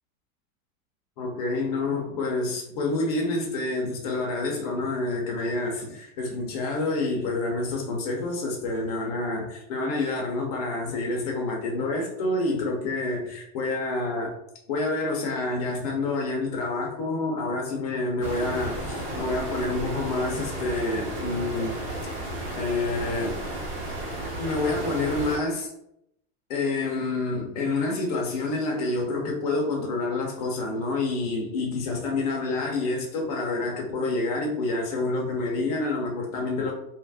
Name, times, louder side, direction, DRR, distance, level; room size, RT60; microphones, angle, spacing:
voice 1, 1.2-14.3 14.7-21.8 22.6-23.4 24.4-25.7 26.5-36.7, left 2 dB, 30° left, 0 dB, 0.4 m, -28 dB
sound 1, 18.2-25.4, right 1 dB, 35° right, 1.0 m, -33 dB
2.9 x 2.4 x 3.3 m, 0.78 s
supercardioid pair, 180°, 41 cm